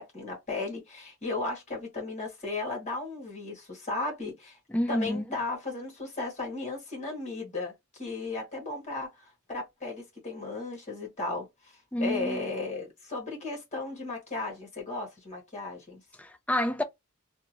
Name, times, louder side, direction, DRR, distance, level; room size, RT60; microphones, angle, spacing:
voice 1, 0.0-4.6 4.9-16.0, left 3 dB, 35° left, 1.8 m, -35 dB
voice 2, 4.7-5.3 11.9-12.4 16.2-16.8, left 1 dB, 5° left, 0.4 m, -29 dB
3.6 x 2.4 x 2.8 m
head